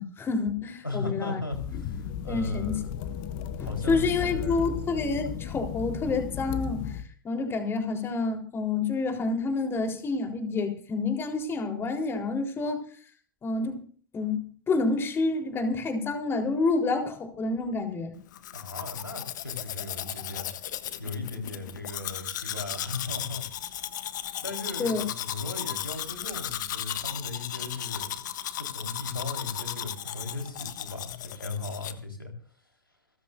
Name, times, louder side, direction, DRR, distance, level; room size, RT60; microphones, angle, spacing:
voice 1, 0.0-1.4 2.3-2.8 3.6-12.8 13.4-13.8 14.1-18.1 24.8-25.0, left 3 dB, 20° left, 3 dB, 3.9 m, -28 dB
voice 2, 0.8-3.0 3.6-4.7 18.5-20.5 21.0-23.5 24.4-28.2 28.6-32.3, left 3 dB, 90° left, 2 dB, 4.2 m, -37 dB
sound 1, 1.5-7.1, left 8 dB, 40° left, 1.3 m, -35 dB
Domestic sounds home sounds, 18.3-31.9, left 11 dB, 60° left, 1.3 m, -36 dB
29.0 x 13.5 x 2.6 m, 0.43 s
figure-of-eight pair, 95°, 11 cm